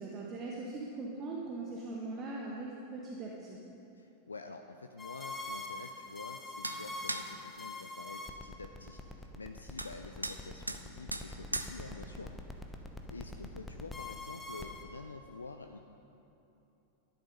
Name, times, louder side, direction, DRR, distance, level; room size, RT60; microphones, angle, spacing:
voice 1, 0.0-3.6, right 3 dB, 30° right, -2 dB, 1.3 m, -40 dB
voice 2, 3.9-12.3 13.1-15.8, left 3 dB, 75° left, 6 dB, 0.5 m, -48 dB
sound 1, 5.0-14.8, left 2 dB, 15° left, 1.0 m, -43 dB
sound 2, 6.6-6.8 7.1-7.3 9.8-9.9 10.2-10.4 10.7-10.8 11.1-11.3 11.5-11.7, right 1 dB, 85° right, 0.6 m, -36 dB
12.0 x 10.5 x 5.3 m, 2.9 s
figure-of-eight pair, 90°, 0 cm